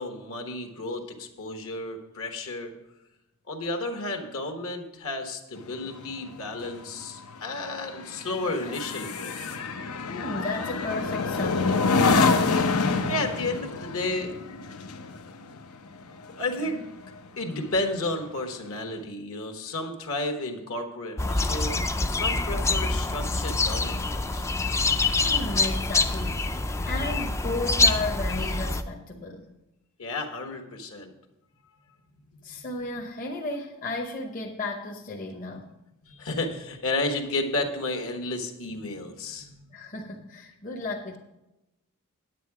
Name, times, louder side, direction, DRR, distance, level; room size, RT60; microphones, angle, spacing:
voice 1, 0.0-2.7 3.5-9.4 13.1-14.3 16.4-16.9 17.4-21.8 22.1-24.5 30.0-31.1 32.5-32.7 36.0-39.7, left 2 dB, 70° left, 4 dB, 1.3 m, -32 dB
sound 1, 5.6-17.3 17.7-18.0, left 4 dB, 85° left, 0.8 m, -27 dB
voice 2, 10.1-11.9 25.2-26.6 26.9-29.5 32.4-35.7 39.7-41.2, left 2 dB, 40° left, 1 dB, 0.9 m, -34 dB
sound 2, 21.2-28.8, left 3 dB, 15° left, 0.3 m, -25 dB
9.3 x 8.9 x 4.7 m, 0.92 s
head